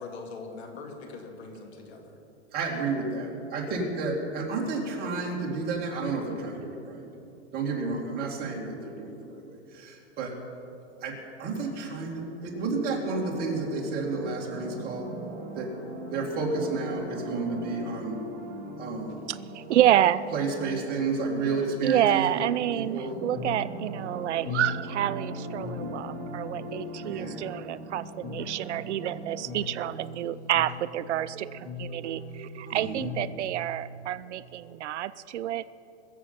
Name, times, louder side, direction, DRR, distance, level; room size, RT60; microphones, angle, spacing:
voice 1, 0.0-2.2, left 3 dB, 65° left, 3 dB, 2.4 m, -42 dB
voice 2, 2.5-7.1 7.5-10.3 11.0-15.1 15.6-15.7 16.1-18.2 18.8-19.2 20.3-22.4 22.7-23.2 27.1-27.4 32.7-33.0, right 3 dB, 25° right, -2 dB, 2.5 m, -31 dB
sound 1, 12.7-30.0, right 1 dB, 40° right, 4.2 m, -41 dB
voice 3, 19.3-20.2 21.8-35.7, right 12 dB, 75° right, 15 dB, 0.5 m, -28 dB
sound 2, 23.3-33.5, left 3 dB, 10° left, 0.4 m, -40 dB
22.5 x 7.5 x 5.9 m, 2.8 s
hypercardioid pair, 145°, 35 cm